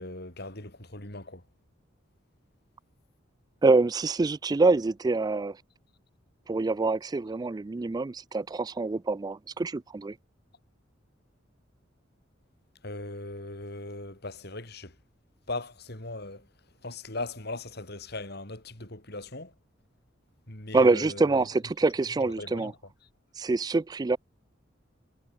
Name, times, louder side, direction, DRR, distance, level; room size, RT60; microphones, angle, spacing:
voice 1, 0.0-1.4 12.8-15.0 15.5-16.5 16.8-19.5 20.5-21.5 22.2-22.8, left 2 dB, 55° left, 5.4 m, -39 dB
voice 2, 3.6-5.6 6.5-10.2 20.7-22.7 23.4-24.2, right 3 dB, 20° right, 0.3 m, -25 dB
head